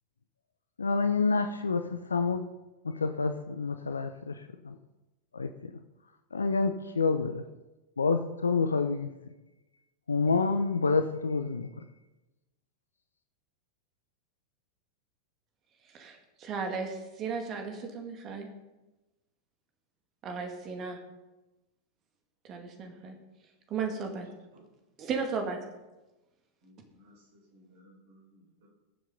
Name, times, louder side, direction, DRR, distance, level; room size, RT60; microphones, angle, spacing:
voice 1, 0.8-2.5 2.9-4.8 5.3-5.5 6.3-7.4 8.0-9.1 10.1-11.7, left 4 dB, 75° left, 9 dB, 0.5 m, -28 dB
voice 2, 15.9-18.5 20.2-21.0 22.4-23.2 23.7-24.3 25.0-25.6, right 5 dB, 30° right, 4 dB, 2.1 m, -35 dB
voice 3, 26.6-28.7, equal, 55° right, -2 dB, 5.0 m, -60 dB
21.0 x 7.4 x 3.9 m, 1.1 s
figure-of-eight pair, 90°, 0 cm